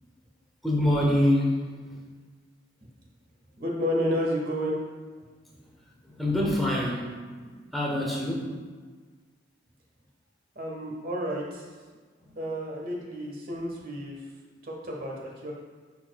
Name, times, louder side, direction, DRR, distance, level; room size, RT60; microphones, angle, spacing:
voice 1, 0.6-1.6 6.2-8.5, left 1 dB, ahead, -4 dB, 1.1 m, -25 dB
voice 2, 3.6-4.8 10.5-11.6 12.3-14.2 14.6-15.5, equal, 50° right, -1 dB, 1.3 m, -31 dB
10.5 x 4.5 x 2.4 m, 1.5 s
head